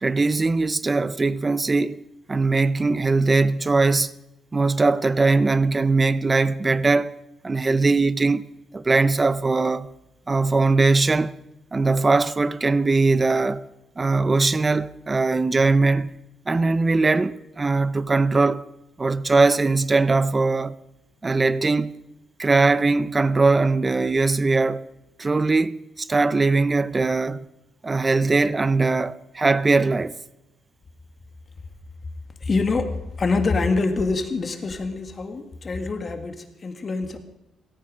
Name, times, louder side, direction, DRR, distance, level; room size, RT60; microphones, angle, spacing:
voice 1, 0.0-4.2 4.5-7.2 7.4-8.5 8.7-9.9 10.3-11.3 11.7-13.7 14.0-16.2 16.5-18.6 19.0-20.8 21.2-21.9 22.4-24.9 25.2-27.5 27.8-30.2, right 3 dB, 25° right, 0.6 m, -20 dB
voice 2, 32.4-37.2, left 3 dB, 35° left, 1.9 m, -25 dB
17.5 x 14.0 x 5.0 m
cardioid pair, 90°, 0 cm